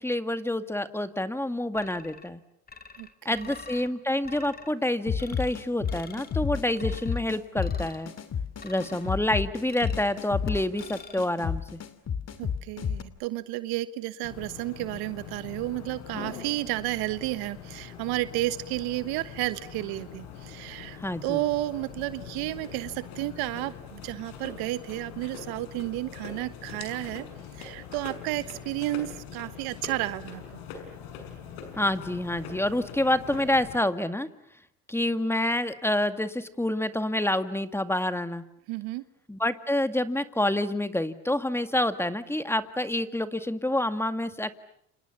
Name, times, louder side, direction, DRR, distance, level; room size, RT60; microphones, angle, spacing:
voice 1, 0.0-2.4 3.3-8.1 8.6-11.8 21.0-21.4 31.8-34.3 34.9-38.4 39.3-44.5, left 1 dB, 5° left, 10 dB, 2.1 m, -28 dB
sound 1, 1.7-2.3 2.7-3.9 4.2-4.7 5.2-5.6 5.9-6.4 6.8-7.2 7.6-8.0 8.6-9.2 9.7-10.2 10.8-11.2, left 4 dB, 25° left, 2.8 m, -47 dB
sound 2, 5.1-13.0, left 7 dB, 45° left, 2.7 m, -31 dB
voice 2, 12.4-27.3 27.6-30.4 38.7-39.0, right 17 dB, 80° right, 14 dB, 1.4 m, -32 dB
sound 3, 14.2-33.8, left 7 dB, 80° left, 6.2 m, -43 dB
30.0 x 27.5 x 7.2 m, 0.72 s
supercardioid pair, 85°, 37 cm